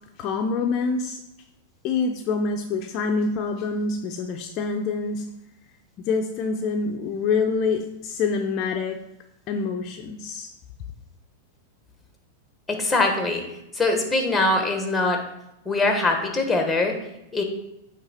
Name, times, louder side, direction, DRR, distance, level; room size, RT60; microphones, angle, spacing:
voice 1, 0.2-1.2 1.8-5.3 6.0-9.0 9.5-10.5, left 4 dB, 40° left, 4 dB, 0.6 m, -26 dB
voice 2, 12.7-13.4 13.7-15.2 15.6-17.0 17.3-17.4, left 2 dB, 5° left, 4 dB, 1.2 m, -22 dB
8.8 x 3.3 x 4.3 m, 0.86 s
hypercardioid pair, 130°, 0 cm